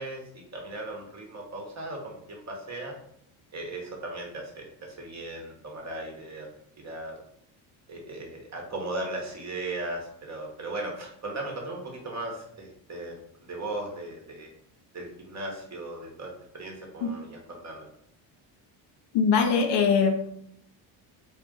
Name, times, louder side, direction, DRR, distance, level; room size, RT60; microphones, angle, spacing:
voice 1, 0.0-2.9 3.5-6.5 6.8-7.2 7.9-14.5 14.9-17.9, right 2 dB, 35° right, 1 dB, 1.0 m, -37 dB
voice 2, 19.1-20.3, left 6 dB, 55° left, 5 dB, 0.6 m, -22 dB
2.5 x 2.4 x 3.7 m, 0.69 s
supercardioid pair, 70°, 50 cm